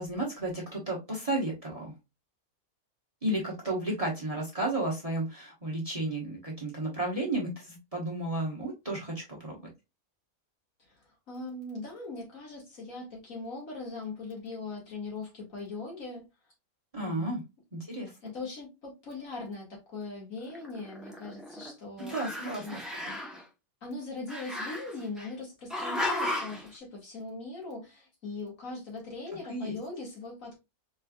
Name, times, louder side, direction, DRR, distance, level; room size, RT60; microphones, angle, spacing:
voice 1, 0.0-1.9 3.2-9.6 16.9-17.4 17.7-18.1 22.0-23.2 29.5-29.8, right 1 dB, 25° right, 1.2 m, -33 dB
voice 2, 10.9-16.3 17.0-17.4 18.2-22.1 22.6-22.8 23.8-30.5, left 3 dB, 65° left, 2.1 m, -40 dB
Growling, 20.5-21.7 22.0-23.4 24.3-25.3 25.7-26.6, left 1 dB, ahead, 0.7 m, -35 dB
4.3 x 3.2 x 2.3 m
omnidirectional pair, 1.5 m